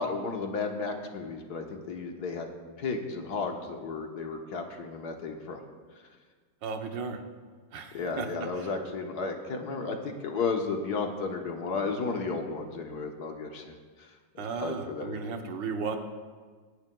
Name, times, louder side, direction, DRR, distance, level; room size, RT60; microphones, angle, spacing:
voice 1, 0.0-2.5 2.8-5.6 7.9-13.7 14.0-14.1 14.3-15.2, left 4 dB, 65° left, 3 dB, 1.6 m, -33 dB
voice 2, 6.6-7.2 7.7-8.3 8.6-8.7 14.4-16.0, right 5 dB, 80° right, 5 dB, 1.6 m, -35 dB
26.0 x 10.5 x 2.3 m, 1.5 s
omnidirectional pair, 1.9 m